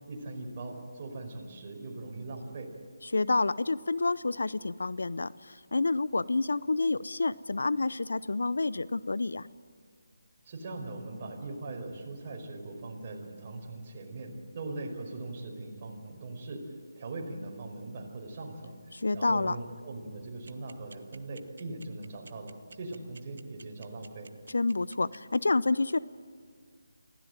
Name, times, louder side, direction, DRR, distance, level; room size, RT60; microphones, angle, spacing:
voice 1, 0.1-2.7 10.4-16.6 17.0-24.3, right 2 dB, 35° right, 1 dB, 5.0 m, -40 dB
voice 2, 3.0-9.5 18.9-19.6 24.5-26.0, left 3 dB, 70° left, 18 dB, 0.6 m, -28 dB
sound 1, 20.5-25.2, right 4 dB, 60° right, 0.9 m, -51 dB
25.5 x 16.0 x 9.0 m, 2.1 s
figure-of-eight pair, 155°, 0 cm